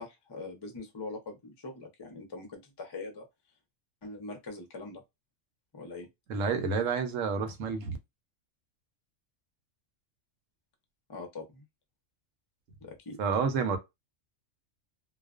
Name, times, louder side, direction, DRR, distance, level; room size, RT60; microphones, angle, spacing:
voice 1, 0.0-3.2 4.0-5.0 5.7-6.1 11.1-11.6 12.8-13.2, left 3 dB, 30° left, 0.4 m, -42 dB
voice 2, 6.3-8.0 13.2-13.8, right 5 dB, 75° right, 1.0 m, -29 dB
2.4 x 2.2 x 2.4 m
omnidirectional pair, 1.3 m